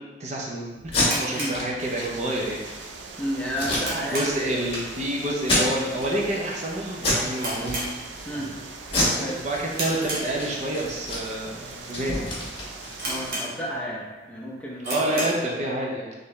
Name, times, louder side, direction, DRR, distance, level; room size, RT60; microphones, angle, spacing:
voice 1, 0.0-2.6 4.1-7.9 8.3-8.5 9.0-12.3 14.8-16.1, right 1 dB, 40° right, -2 dB, 0.6 m, -28 dB
Packing tape duct tape, 0.8-1.1 1.5-1.6 1.9-2.0 2.5-2.8 3.5-4.3 4.7-4.8 5.4-6.1 6.4-6.7 7.0-7.3 7.6-8.2 8.8-10.0 10.3-10.5 10.7-13.4, left 2 dB, 35° left, 1.4 m, -27 dB
sound 1, 1.0-2.4 2.6-2.7 3.3-4.6 4.9-5.2 5.5-5.6 6.3-6.5 6.8-6.9 7.3-8.5 8.8-9.1 9.7-10.8 11.4-11.5 12.1-12.2 12.4-12.5 13.0-13.9 14.3-14.4 14.8-15.5, right 1 dB, 55° right, 1.1 m, -33 dB
sound 2, 1.8-13.4, right 3 dB, 85° right, 0.5 m, -41 dB
voice 2, 3.2-4.7 8.2-8.5 9.2-9.4 13.1-15.3, equal, 5° left, -5 dB, 0.7 m, -32 dB
4.4 x 3.2 x 3.2 m, 1.2 s
head